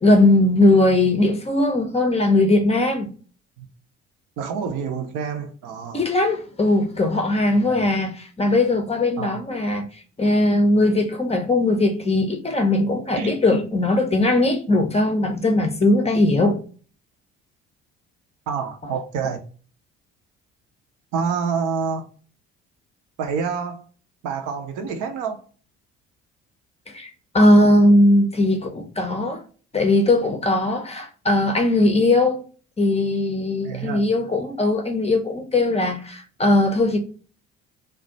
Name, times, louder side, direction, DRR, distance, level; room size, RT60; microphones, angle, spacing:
voice 1, 0.0-3.1 5.9-9.9 10.2-16.6 26.9-29.4 29.7-32.4 32.8-37.0, left 2 dB, 15° left, 0.6 m, -19 dB
voice 2, 4.4-6.1 7.5-7.8 9.2-9.3 13.2-13.3 18.5-19.4 21.1-22.1 23.2-23.9 24.2-25.4 33.6-34.1, right 6 dB, 55° right, 0.6 m, -27 dB
2.4 x 2.1 x 3.8 m
figure-of-eight pair, 50°, 36 cm